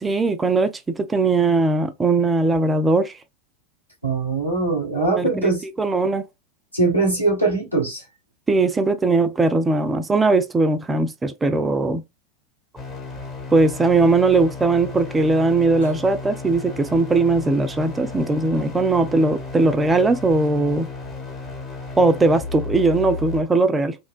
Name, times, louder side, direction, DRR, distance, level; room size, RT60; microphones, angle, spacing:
voice 1, 0.0-3.1 5.1-5.5 5.8-6.3 8.5-12.0 13.5-20.9 22.0-24.0, right 3 dB, 15° right, 0.3 m, -19 dB
voice 2, 4.0-5.6 6.7-8.0, right 3 dB, 90° left, 1.4 m, -21 dB
sound 1, 12.8-23.4, left 3 dB, 30° left, 1.1 m, -34 dB
3.0 x 2.2 x 2.2 m
figure-of-eight pair, 90°, 0 cm